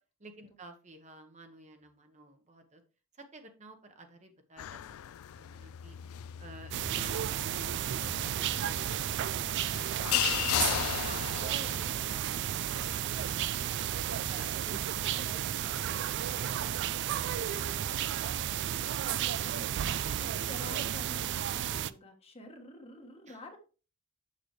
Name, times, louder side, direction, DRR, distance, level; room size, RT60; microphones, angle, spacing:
voice 1, 0.2-2.8 3.1-6.0 11.0-13.9 14.2-17.5 23.3-23.4, right 2 dB, 35° right, 5 dB, 1.0 m, -53 dB
sound 1, 4.6-12.1, left 12 dB, 70° left, 0.3 m, -36 dB
sound 2, 6.7-21.9, right 10 dB, 55° right, 0.3 m, -33 dB
voice 2, 19.2-19.8 20.2-23.6, left 1 dB, 25° left, 4 dB, 1.2 m, -49 dB
6.7 x 6.7 x 3.1 m, 0.34 s
head